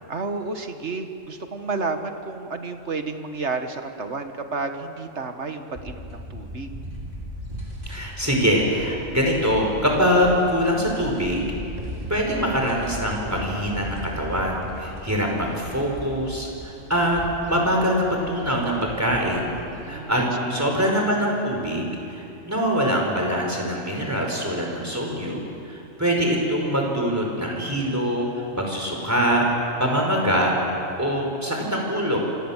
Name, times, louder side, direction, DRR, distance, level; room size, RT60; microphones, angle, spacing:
voice 1, 0.1-6.7 19.7-20.3 20.6-20.7, right 3 dB, 60° right, 6 dB, 1.9 m, -31 dB
sound 1, 5.7-19.9, equal, 40° right, 4.3 m, -37 dB
voice 2, 7.9-11.5 12.1-19.5 19.9-28.3 28.6-30.6 31.0-32.2, equal, 10° right, 0 dB, 5.2 m, -23 dB
27.5 x 25.5 x 7.4 m, 2.8 s
omnidirectional pair, 1.3 m